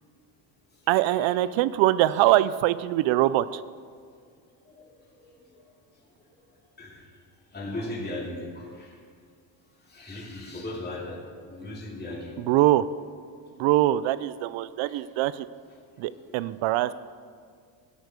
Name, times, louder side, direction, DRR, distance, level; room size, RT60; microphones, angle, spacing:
voice 1, 0.9-3.6 12.4-12.8 13.6-15.5 16.0-16.9, right 15 dB, 70° right, 16 dB, 0.6 m, -23 dB
voice 2, 7.5-8.9 9.9-11.2 11.5-12.4, left 1 dB, 20° left, -3 dB, 2.7 m, -36 dB
11.5 x 8.2 x 6.6 m, 2.1 s
cardioid pair, 110°, 48 cm